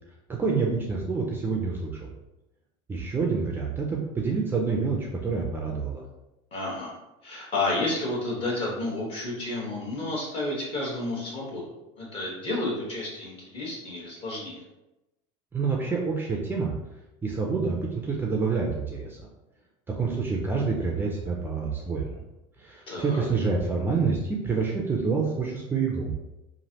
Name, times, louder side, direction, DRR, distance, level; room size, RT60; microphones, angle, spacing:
voice 1, 0.3-2.1 2.9-6.0 15.5-16.7 17.2-19.2 19.9-22.2 22.6-26.1, right 4 dB, 15° right, -1 dB, 0.3 m, -27 dB
voice 2, 6.5-6.9 7.2-14.6 22.9-23.2, left 2 dB, 35° left, -4 dB, 1.2 m, -31 dB
3.1 x 2.5 x 2.8 m, 0.96 s
supercardioid pair, 140°, 15 cm